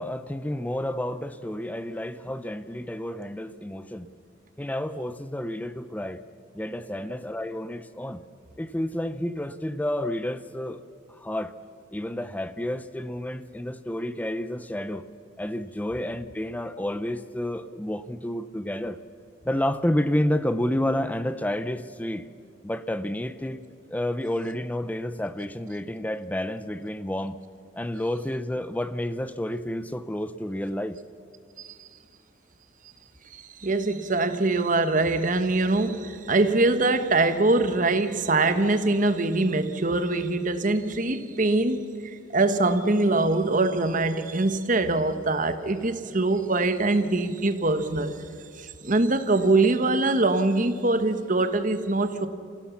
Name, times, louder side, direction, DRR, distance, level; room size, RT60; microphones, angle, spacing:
voice 1, 0.0-4.1 4.6-6.2 6.5-8.2 8.6-10.8 11.2-11.5 11.9-15.1 15.4-19.0 19.4-22.3 22.6-23.6 23.9-27.4 27.7-31.0, left 1 dB, 10° left, 13 dB, 0.5 m, -30 dB
voice 2, 33.3-48.2 48.6-52.3, right 2 dB, 40° right, 9 dB, 1.2 m, -23 dB
27.0 x 16.0 x 7.2 m, 2.4 s
head